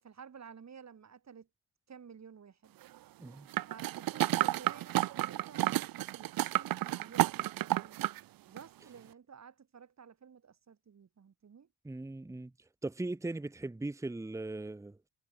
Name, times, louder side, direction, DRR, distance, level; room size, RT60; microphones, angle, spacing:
voice 1, 0.0-1.5 1.9-2.8 3.6-8.1 8.5-11.7, right 7 dB, 50° right, 6.2 m, -53 dB
sound 1, 3.5-8.2 8.6-8.7, right 15 dB, 75° right, 0.6 m, -31 dB
voice 2, 11.8-12.5 12.8-15.1, right 2 dB, 10° right, 0.9 m, -39 dB
cardioid pair, 95°, 35 cm